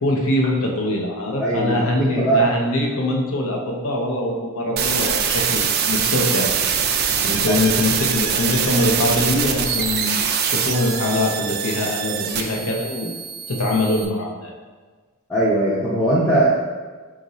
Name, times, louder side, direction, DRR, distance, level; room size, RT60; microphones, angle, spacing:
voice 1, 0.0-6.6 7.2-13.2 13.5-14.5, left 1 dB, 75° left, 0 dB, 0.7 m, -23 dB
voice 2, 1.4-1.8 2.2-2.5 7.5-7.6 15.3-16.5, right 2 dB, 10° left, -10 dB, 0.5 m, -19 dB
sound 1, 4.8-14.0, right 7 dB, 45° right, 0.3 m, -23 dB
4.0 x 2.5 x 4.0 m, 1.4 s
head